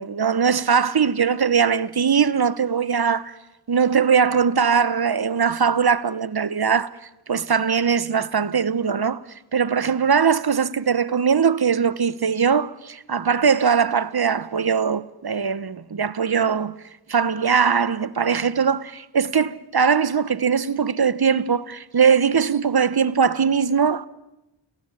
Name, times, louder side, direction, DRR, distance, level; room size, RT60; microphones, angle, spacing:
voice 1, 0.0-3.4 3.7-6.9 7.3-9.2 9.5-16.7 17.1-24.1, right 6 dB, 50° right, 1.3 m, -20 dB
30.0 x 18.5 x 9.9 m
cardioid pair, 45°, 47 cm